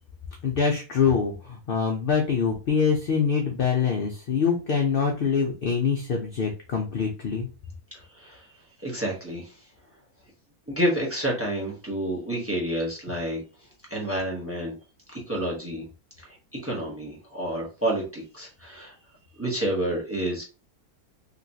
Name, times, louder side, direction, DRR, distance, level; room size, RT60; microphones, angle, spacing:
voice 1, 0.4-7.5, left 6 dB, 70° left, 2 dB, 0.5 m, -24 dB
voice 2, 7.9-8.5 8.8-9.6 10.7-13.4 13.9-14.8 15.3-15.9 16.2-18.9 19.4-20.4, right 1 dB, 10° right, -2 dB, 0.9 m, -29 dB
3.0 x 3.0 x 2.7 m, 0.33 s
omnidirectional pair, 1.6 m